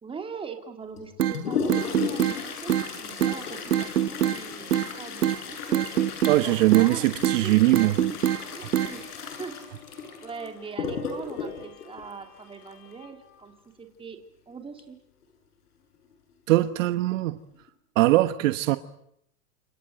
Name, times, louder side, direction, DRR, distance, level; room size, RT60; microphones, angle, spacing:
voice 1, 0.0-5.9 6.4-8.2 8.5-9.0 9.4-9.5 10.2-14.2 14.5-15.0, right 5 dB, 10° right, 4 dB, 3.1 m, -41 dB
Toilet flush, 0.9-12.9 14.8-14.9 15.2-15.3 16.1-16.2 16.9-17.1 17.5-17.7, left 6 dB, 80° left, 7.9 m, -35 dB
sound 1, 1.2-1.4 1.7-2.4 2.7-2.9 3.2-3.4 3.7-4.4 4.7-4.9 5.2-5.4 5.7-6.4 6.7-6.9 7.2-7.4 7.7-8.4 8.7-8.9, right 11 dB, 90° right, 1.5 m, -23 dB
voice 2, 6.3-8.0 16.5-17.4 18.0-18.8, right 17 dB, 55° right, 11 dB, 1.2 m, -21 dB
Bowed string instrument, 8.1-14.4, left 5 dB, 50° left, 6.6 m, -53 dB
28.0 x 26.5 x 7.8 m, 0.76 s
hypercardioid pair, 135°, 46 cm